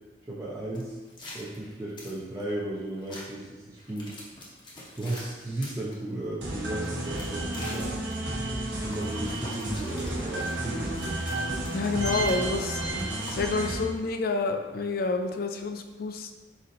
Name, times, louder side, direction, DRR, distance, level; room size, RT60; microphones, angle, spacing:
voice 1, 0.3-1.0 1.3-4.1 4.9-7.9 8.8-10.9, right 1 dB, 15° right, -7 dB, 0.5 m, -35 dB
sound 1, 0.7-2.5 3.0-3.2 3.8-5.9 6.8-8.1 8.8-13.7, left 1 dB, 25° left, 0.7 m, -45 dB
sound 2, 6.4-13.8, right 1 dB, 80° right, 1.0 m, -32 dB
Alarm, 7.0-9.7 10.9-13.7, right 5 dB, 35° right, 1.2 m, -44 dB
voice 2, 11.7-12.8 13.3-16.3, left 3 dB, 55° left, 6 dB, 0.3 m, -28 dB
4.2 x 4.0 x 2.6 m, 1.2 s
head